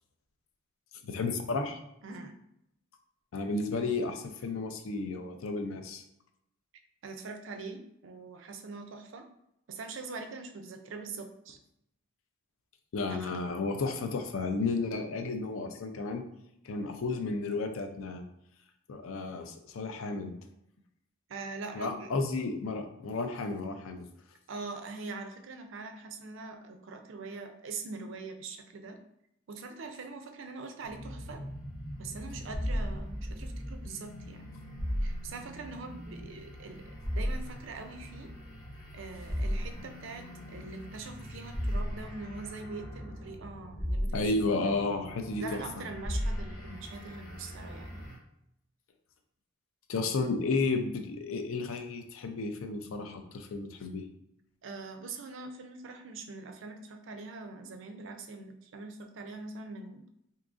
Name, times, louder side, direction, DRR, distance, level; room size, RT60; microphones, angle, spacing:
voice 1, 1.0-1.8 3.3-6.0 12.9-16.2 16.6-18.2 18.9-20.3 21.7-24.0 44.1-45.6 49.9-54.0, left 3 dB, 80° left, 6 dB, 0.5 m, -32 dB
voice 2, 2.0-2.3 7.0-9.3 9.7-11.6 13.1-13.3 21.3-22.1 24.5-29.0 29.5-31.4 32.0-34.5 35.0-36.8 37.1-38.3 38.9-44.8 45.4-48.0 54.6-60.0, right 3 dB, 65° right, 6 dB, 0.4 m, -43 dB
sound 1, 30.8-48.2, equal, 20° left, 0.7 m, -37 dB
3.6 x 2.9 x 2.5 m, 0.79 s
head